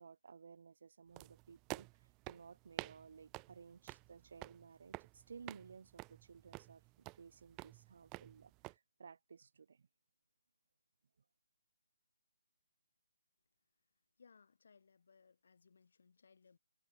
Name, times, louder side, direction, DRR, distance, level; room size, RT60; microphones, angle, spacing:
voice 1, 0.0-9.9, right 6 dB, 55° right, 7.9 m, -57 dB
sound 1, 1.2-8.7, right 26 dB, 15° right, 0.6 m, -51 dB
voice 2, 14.2-16.6, left 5 dB, 60° left, 5.7 m, -66 dB
hypercardioid pair, 165°, 0 cm